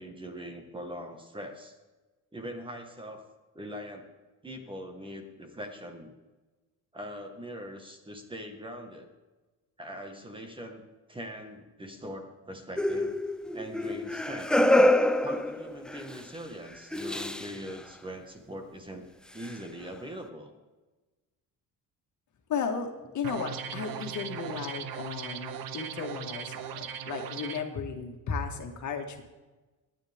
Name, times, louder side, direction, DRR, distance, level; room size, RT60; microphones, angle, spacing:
voice 1, 0.0-1.7 2.3-3.2 3.5-4.1 4.4-6.2 6.9-9.1 9.8-10.8 11.1-13.2 13.5-14.5 15.2-19.1 19.3-20.5, equal, 15° right, 4 dB, 1.7 m, -42 dB
sound 1, 12.8-16.2 16.9-17.6 19.4-19.5, left 1 dB, ahead, 0.5 m, -26 dB
voice 2, 22.5-29.2, left 6 dB, 55° left, 3 dB, 2.1 m, -35 dB
sound 2, 23.2-27.6, right 8 dB, 80° right, 1.0 m, -38 dB
26.0 x 9.8 x 3.7 m, 1.2 s
cardioid pair, 135°, 34 cm